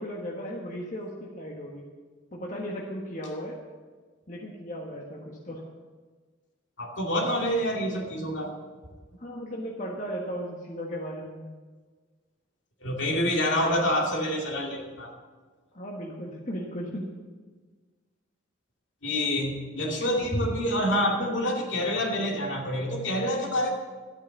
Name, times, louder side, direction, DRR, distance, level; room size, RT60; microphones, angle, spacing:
voice 1, 0.0-1.9 2.3-3.6 4.3-5.6 9.2-11.5 15.7-17.1, equal, 40° left, -2 dB, 1.5 m, -36 dB
voice 2, 6.8-8.5 12.8-15.1 19.0-23.7, equal, 65° left, 0 dB, 2.5 m, -27 dB
13.0 x 8.8 x 7.1 m, 1.4 s
head